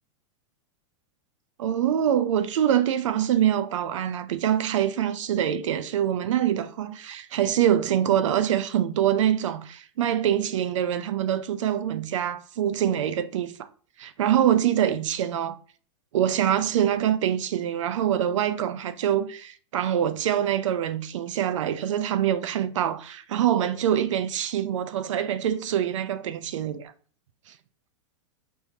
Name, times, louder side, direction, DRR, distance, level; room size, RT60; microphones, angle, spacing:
voice 1, 1.6-13.7 14.0-15.6 16.1-26.9, right 10 dB, 90° right, 0.6 m, -25 dB
5.4 x 3.1 x 2.7 m
supercardioid pair, 170°, 15 cm